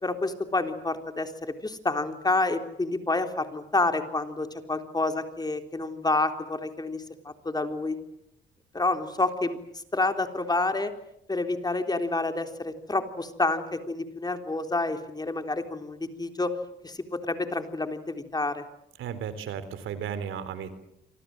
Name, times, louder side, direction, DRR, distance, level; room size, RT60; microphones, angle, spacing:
voice 1, 0.0-8.0 8.7-9.6 9.9-10.9 11.3-16.5 16.8-18.6, left 2 dB, 20° left, 6 dB, 3.7 m, -28 dB
voice 2, 19.0-20.8, right 8 dB, 85° right, 13 dB, 3.7 m, -34 dB
27.5 x 25.5 x 7.9 m, 0.81 s
cardioid pair, 90°, 20 cm